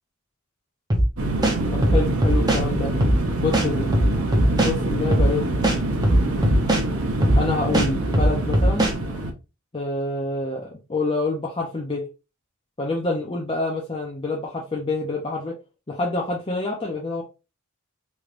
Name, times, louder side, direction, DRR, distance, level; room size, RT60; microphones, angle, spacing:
sound 1, 0.9-1.1 1.4-2.6 3.0-3.2 3.5-4.7 5.1-5.3 5.6-6.8 7.2-7.4 7.7-8.9, right 1 dB, 20° right, 0.7 m, -19 dB
sound 2, 1.2-9.3, right 2 dB, 85° right, 0.8 m, -25 dB
voice 1, 1.7-2.9 3.4-4.0 4.6-5.4 7.4-8.9 9.7-12.0 12.8-15.6 15.9-17.2, left 3 dB, 25° left, -1 dB, 0.6 m, -27 dB
3.2 x 3.2 x 2.5 m, 0.29 s
head